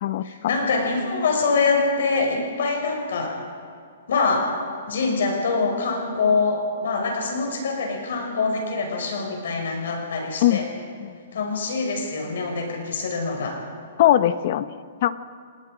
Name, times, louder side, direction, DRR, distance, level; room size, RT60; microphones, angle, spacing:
voice 1, 0.2-3.3 4.1-4.5 4.9-10.6 11.3-13.6, left 4 dB, 65° left, 2 dB, 5.5 m, -24 dB
voice 2, 14.0-15.2, left 12 dB, 40° left, 14 dB, 0.7 m, -20 dB
29.0 x 20.0 x 5.1 m, 2.2 s
hypercardioid pair, 175°, 0 cm